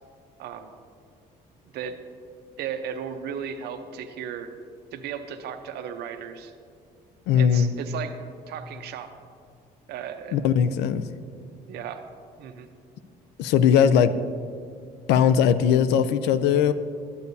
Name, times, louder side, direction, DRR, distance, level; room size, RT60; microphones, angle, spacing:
voice 1, 0.4-0.7 1.7-2.0 2.6-4.5 4.9-6.5 7.3-8.1 8.5-9.1 9.9-10.4 11.7-12.0 12.4-12.7, right 8 dB, 75° right, 7 dB, 0.7 m, -35 dB
voice 2, 7.3-7.7 10.3-11.0 13.4-14.1 15.1-16.7, left 8 dB, 90° left, 13 dB, 0.4 m, -19 dB
11.5 x 8.2 x 2.7 m, 2.2 s
cardioid pair, 110°, 17 cm